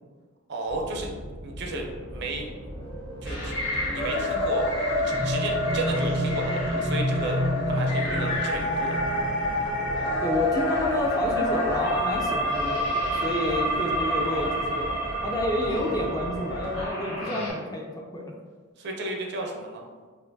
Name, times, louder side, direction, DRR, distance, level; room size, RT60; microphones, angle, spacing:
voice 1, 0.5-1.1 1.4-2.4 3.2-3.5 3.9-9.0 18.8-19.9, right 2 dB, 55° right, 1 dB, 0.5 m, -33 dB
sound 1, 0.7-16.9, right 1 dB, 80° right, 0.9 m, -39 dB
sound 2, 3.2-17.5, equal, 60° left, 1.4 m, -27 dB
voice 2, 10.2-18.3, left 1 dB, 20° left, 0 dB, 0.4 m, -29 dB
4.4 x 2.5 x 2.6 m, 1.5 s
head